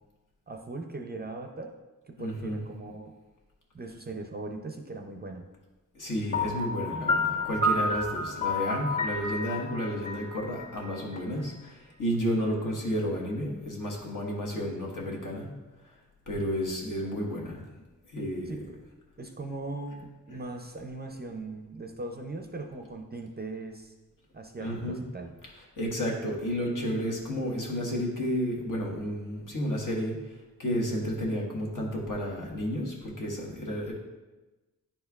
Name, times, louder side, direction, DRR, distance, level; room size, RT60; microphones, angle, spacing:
voice 1, 0.5-1.7 2.1-3.1 3.7-5.5 18.5-18.8 19.2-23.9 24.3-25.3, right 2 dB, 30° right, 4 dB, 0.4 m, -39 dB
voice 2, 2.2-2.6 5.9-15.5 16.3-17.6 18.1-18.5 24.6-25.0 25.8-30.2 30.6-33.9, equal, 65° left, -2 dB, 1.4 m, -31 dB
Piano, 6.3-11.2, left 2 dB, 20° left, 0.9 m, -30 dB
10.0 x 4.4 x 2.3 m, 1.1 s
wide cardioid pair, 125°, 35 cm